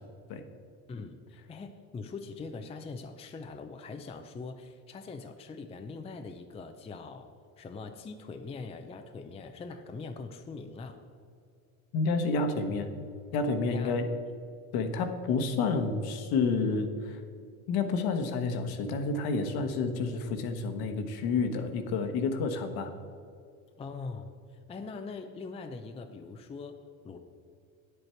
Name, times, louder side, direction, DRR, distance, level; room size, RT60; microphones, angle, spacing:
voice 1, 0.9-7.3 7.6-11.0 13.7-14.0 14.7-14.9 23.8-27.2, left 4 dB, 15° left, 6 dB, 0.5 m, -42 dB
voice 2, 11.9-12.9 13.3-14.1 14.7-17.2 17.7-22.9, left 4 dB, 55° left, 7 dB, 1.2 m, -29 dB
9.0 x 8.1 x 4.5 m, 2.4 s
supercardioid pair, 95°, 43 cm